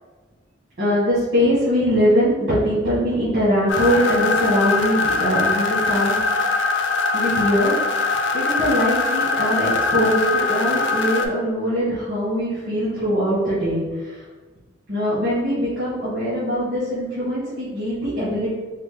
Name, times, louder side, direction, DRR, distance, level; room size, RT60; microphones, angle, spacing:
voice 1, 0.8-6.2 7.1-7.7 8.3-14.1 14.9-18.5, equal, 80° right, -12 dB, 1.5 m, -22 dB
sound 1, 3.7-11.3, left 4 dB, 80° left, 0.4 m, -22 dB
4.0 x 2.1 x 3.4 m, 1.4 s
head